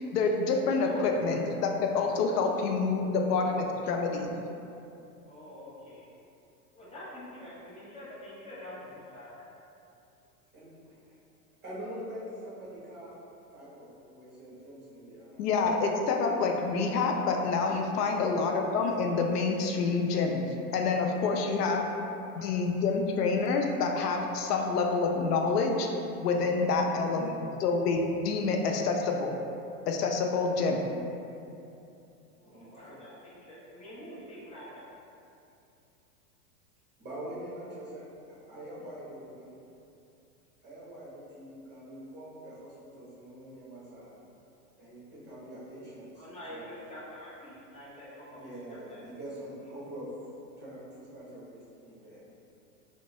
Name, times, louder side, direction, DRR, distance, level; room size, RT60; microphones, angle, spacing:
voice 1, 0.1-4.3 15.4-20.4 20.7-21.8 22.3-25.9 26.2-29.3 29.9-30.8, left 4 dB, 85° left, 2 dB, 0.5 m, -27 dB
voice 2, 0.7-1.1 2.4-2.6 5.2-6.1 6.7-9.3 22.3-22.7 32.4-34.8 46.2-48.4 48.7-49.0, left 1 dB, 15° left, -8 dB, 0.7 m, -46 dB
voice 3, 10.5-11.2 11.6-13.2 13.5-15.5 18.8-19.0 26.8-27.0 32.4-33.0 37.0-39.6 40.6-44.2 44.8-45.0 45.3-46.8 48.4-50.1 50.6-52.2, right 1 dB, 25° right, -8 dB, 1.1 m, -44 dB
3.5 x 2.2 x 3.0 m, 2.7 s
hypercardioid pair, 115°, 46 cm